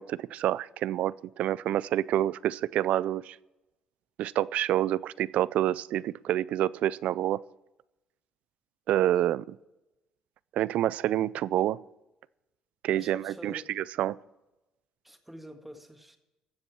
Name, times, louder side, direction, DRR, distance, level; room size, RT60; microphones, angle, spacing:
voice 1, 0.0-3.4 4.2-7.4 8.9-9.6 10.5-11.8 12.8-14.2, right 12 dB, 70° right, 21 dB, 0.4 m, -28 dB
voice 2, 12.9-13.7 15.0-16.2, equal, 5° right, 5 dB, 1.8 m, -46 dB
15.0 x 7.0 x 6.2 m, 0.98 s
supercardioid pair, 75°, 2 cm